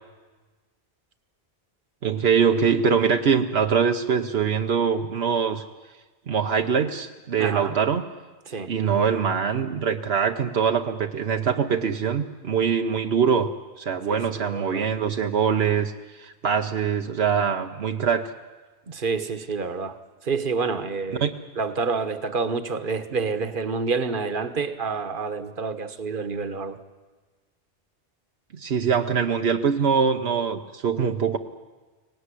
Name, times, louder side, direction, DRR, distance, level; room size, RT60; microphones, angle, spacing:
voice 1, 2.0-5.6 6.3-8.0 8.7-13.5 13.8-18.3 21.2-21.3 28.6-31.4, right 6 dB, 80° right, 5 dB, 1.2 m, -23 dB
voice 2, 7.4-7.8 8.5-8.7 14.1-14.9 18.9-20.0 20.2-21.2 21.6-26.8, right 4 dB, 55° right, 10 dB, 1.4 m, -28 dB
24.0 x 18.5 x 9.9 m, 1.3 s
omnidirectional pair, 1.0 m